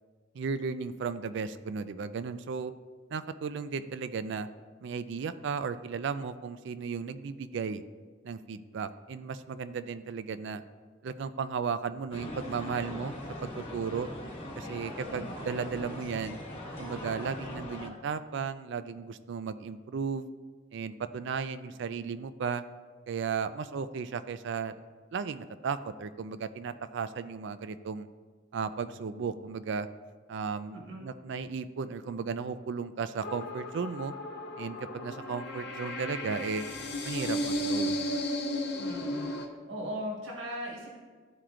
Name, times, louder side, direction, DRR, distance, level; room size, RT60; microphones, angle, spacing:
voice 1, 0.3-2.7 3.1-4.5 4.8-7.8 8.2-10.6 11.0-13.1 13.4-14.1 14.5-16.4 16.8-20.2 20.7-22.6 23.1-24.7 25.1-28.1 28.5-29.9 30.3-34.1 34.6-36.7 37.0-38.2, right 5 dB, 65° right, 13 dB, 0.4 m, -35 dB
sound 1, 12.1-17.9, left 1 dB, 30° left, 1.1 m, -40 dB
voice 2, 15.0-15.4 30.7-31.0 38.8-39.3 39.7-41.0, equal, 85° right, -2 dB, 1.4 m, -38 dB
sound 2, 33.2-39.5, left 1 dB, 55° left, 0.7 m, -34 dB
13.0 x 4.4 x 2.5 m, 1.5 s
head